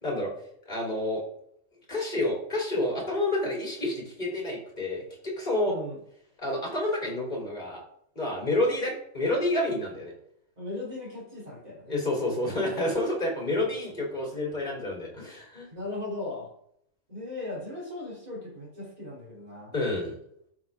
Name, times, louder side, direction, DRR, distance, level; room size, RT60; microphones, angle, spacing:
voice 1, 0.0-0.3 0.7-1.2 1.9-5.8 6.4-7.8 8.2-10.1 11.9-15.7 19.7-20.1, left 1 dB, 35° left, -1 dB, 3.7 m, -29 dB
voice 2, 5.6-6.0 10.6-12.0 13.5-13.6 15.7-16.5 17.1-19.7, left 2 dB, 30° right, -4 dB, 3.5 m, -38 dB
12.5 x 6.1 x 3.6 m, 0.71 s
omnidirectional pair, 1.3 m